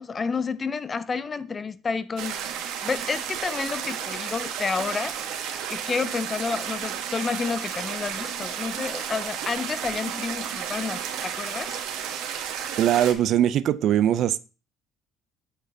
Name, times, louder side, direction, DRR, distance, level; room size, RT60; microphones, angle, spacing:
voice 1, 0.0-2.4 2.8-11.8, left 5 dB, 30° left, 0.5 m, -30 dB
sound 1, 2.2-13.1, right 8 dB, 75° right, 1.3 m, -32 dB
voice 2, 12.8-14.4, right 11 dB, 60° right, 0.4 m, -21 dB
7.8 x 6.3 x 2.7 m
supercardioid pair, 100°, 0 cm